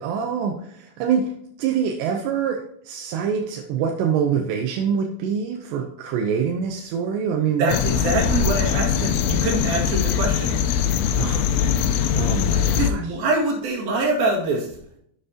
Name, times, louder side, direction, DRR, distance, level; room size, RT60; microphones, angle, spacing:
voice 1, 0.0-7.8 11.2-11.5 12.1-13.2, right 7 dB, 85° right, 3 dB, 3.0 m, -25 dB
voice 2, 7.6-10.5 12.7-14.7, right 2 dB, 65° right, 0 dB, 3.7 m, -24 dB
sound 1, 7.7-12.9, left 8 dB, 85° left, 2.8 m, -21 dB
11.0 x 7.7 x 2.9 m, 0.69 s
omnidirectional pair, 4.8 m